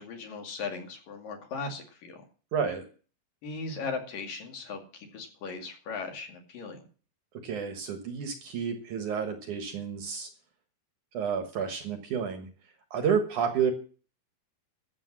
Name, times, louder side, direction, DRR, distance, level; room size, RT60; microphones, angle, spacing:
voice 1, 0.0-2.2 3.4-6.8, left 4 dB, 60° left, 3 dB, 4.0 m, -38 dB
voice 2, 2.5-2.8 7.4-10.3 11.1-12.5 12.9-13.7, right 7 dB, 60° right, 6 dB, 2.4 m, -30 dB
13.5 x 7.8 x 7.5 m, 0.39 s
omnidirectional pair, 4.6 m